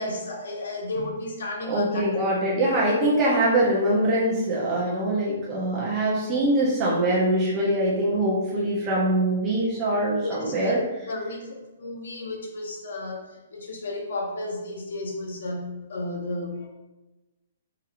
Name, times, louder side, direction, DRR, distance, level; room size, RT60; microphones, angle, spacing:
voice 1, 0.0-2.0 10.2-13.2 13.5-16.7, left 2 dB, 60° left, 1 dB, 1.0 m, -33 dB
voice 2, 1.7-10.8, right 1 dB, 15° right, -6 dB, 0.7 m, -23 dB
3.9 x 2.6 x 4.3 m, 1.1 s
hypercardioid pair, 180°, 0 cm